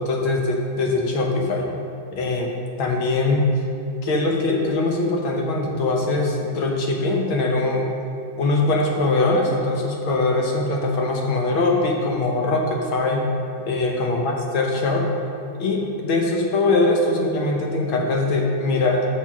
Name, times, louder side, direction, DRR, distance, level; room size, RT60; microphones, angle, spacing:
voice 1, 0.0-1.7 2.1-3.5 4.0-7.9 8.4-13.3 13.7-15.1 15.6-19.1, left 2 dB, 80° left, 1 dB, 1.8 m, -22 dB
7.1 x 5.3 x 6.0 m, 2.6 s
omnidirectional pair, 2.3 m